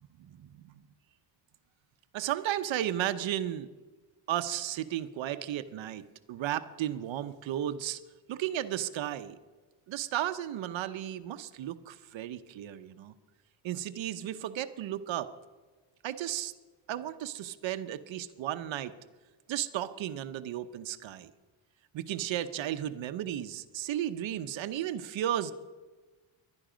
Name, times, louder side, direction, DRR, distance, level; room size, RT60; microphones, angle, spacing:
voice 1, 0.3-0.7 2.1-3.7 4.3-6.0 6.3-8.0 8.3-9.4 9.9-13.1 13.6-15.3 16.0-16.5 16.9-18.9 19.5-21.3 21.9-25.5, right 11 dB, 75° right, 11 dB, 0.9 m, -34 dB
21.0 x 12.0 x 5.1 m, 1.3 s
cardioid pair, 120°, 47 cm